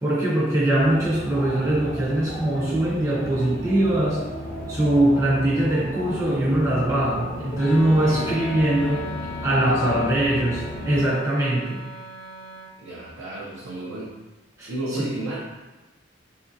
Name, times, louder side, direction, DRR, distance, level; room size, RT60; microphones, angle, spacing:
voice 1, 0.0-4.2 4.7-9.1 9.4-11.8 14.6-15.1, right 1 dB, 15° right, -7 dB, 0.5 m, -22 dB
sound 1, 0.8-11.1, left 1 dB, 50° left, 0.6 m, -34 dB
Wind instrument woodwind instrument, 7.5-12.8, left 2 dB, 90° left, 0.4 m, -39 dB
voice 2, 8.0-8.4 9.6-10.0 12.8-14.1 14.7-15.4, right 1 dB, 85° right, -7 dB, 0.5 m, -32 dB
3.0 x 2.4 x 2.6 m, 1.1 s
head